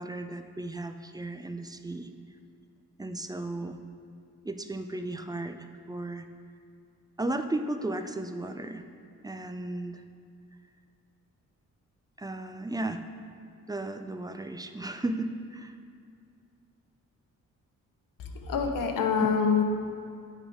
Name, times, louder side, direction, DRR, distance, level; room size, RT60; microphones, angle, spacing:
voice 1, 0.0-2.1 3.0-3.8 4.4-6.3 7.2-8.8 9.2-10.0 12.2-13.0 13.7-15.8 19.2-19.3, right 2 dB, 10° right, 7 dB, 0.4 m, -35 dB
voice 2, 18.2-19.6, left 6 dB, 75° left, 4 dB, 0.9 m, -26 dB
8.7 x 4.8 x 4.9 m, 2.3 s
cardioid pair, 95°, 33 cm